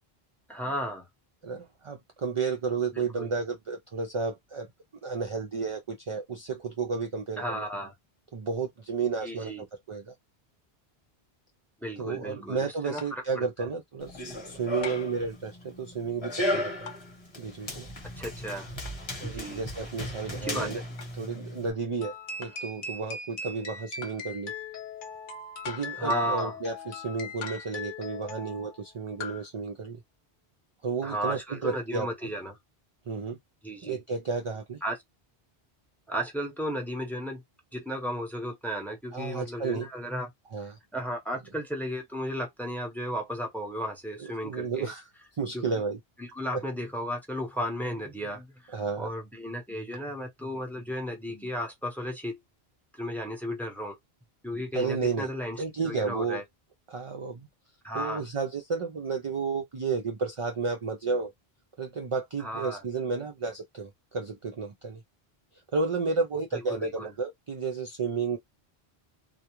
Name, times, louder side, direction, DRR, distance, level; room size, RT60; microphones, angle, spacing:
voice 1, 0.5-1.1 2.9-3.3 7.4-7.9 9.2-9.6 11.8-13.5 18.2-18.7 19.2-19.7 20.4-20.7 26.0-26.6 31.0-32.6 33.6-34.0 34.8-35.0 36.1-37.4 37.7-40.3 40.9-44.9 45.5-45.7 46.2-52.4 52.9-54.0 54.4-56.4 57.8-58.2 62.4-62.8 66.5-67.1, equal, ahead, 0.7 m, -34 dB
voice 2, 1.4-4.7 5.0-7.7 8.3-10.1 12.0-16.9 17.4-17.9 19.2-20.8 21.2-22.1 22.4-24.5 25.7-30.0 30.8-32.1 33.1-33.4 33.8-34.8 39.1-39.9 40.5-40.8 44.4-45.0 45.3-46.0 46.5-46.6 48.7-49.1 54.7-55.3 55.6-56.4 56.9-57.5 57.9-61.3 61.8-65.0 65.7-68.4, right 4 dB, 50° right, 0.3 m, -32 dB
sound 1, 13.0-13.3 14.8-15.2 16.9-17.1 18.8-19.0 21.0-21.2 22.4-22.7 24.0-24.3 25.6-26.1 27.4-27.9 29.2-29.5, left 8 dB, 85° left, 0.9 m, -42 dB
Run, 14.0-21.7, left 1 dB, 30° left, 0.9 m, -36 dB
sound 2, 22.0-28.8, left 3 dB, 60° left, 0.8 m, -40 dB
2.3 x 2.1 x 2.9 m
omnidirectional pair, 1.0 m